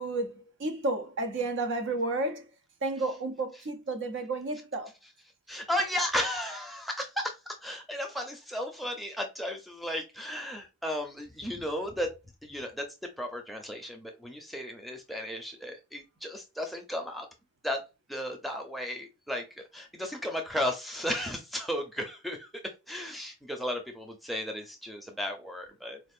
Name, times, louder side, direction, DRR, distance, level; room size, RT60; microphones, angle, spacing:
voice 1, 0.0-2.5 2.8-4.9, right 2 dB, 55° right, 0.5 m, -32 dB
voice 2, 5.5-12.1 12.4-12.9 13.2-17.3 17.6-17.8 18.1-22.5 22.9-26.0, left 1 dB, ahead, 0.6 m, -34 dB
4.5 x 2.4 x 2.4 m
head